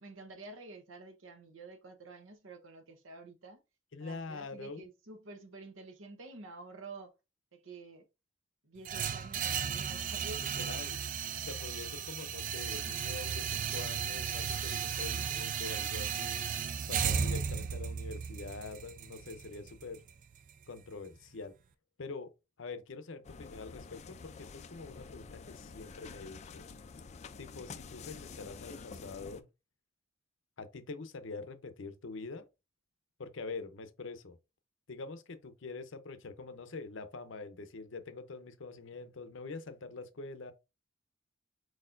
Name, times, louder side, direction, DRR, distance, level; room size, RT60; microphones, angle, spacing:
voice 1, 0.0-3.6 4.0-7.1 7.5-8.1 8.6-10.5, right 3 dB, 75° right, 0.9 m, -49 dB
voice 2, 3.9-4.8 10.4-11.0 11.4-16.6 16.9-20.0 20.7-21.5 22.0-22.3 22.6-26.6 27.4-29.4 30.6-32.4 33.2-34.4 34.9-40.5, left 4 dB, 65° left, 0.6 m, -45 dB
sound 1, 8.8-20.9, right 7 dB, 40° right, 0.3 m, -35 dB
sound 2, 23.2-29.4, left 4 dB, 35° left, 0.3 m, -48 dB
4.7 x 4.2 x 2.5 m
head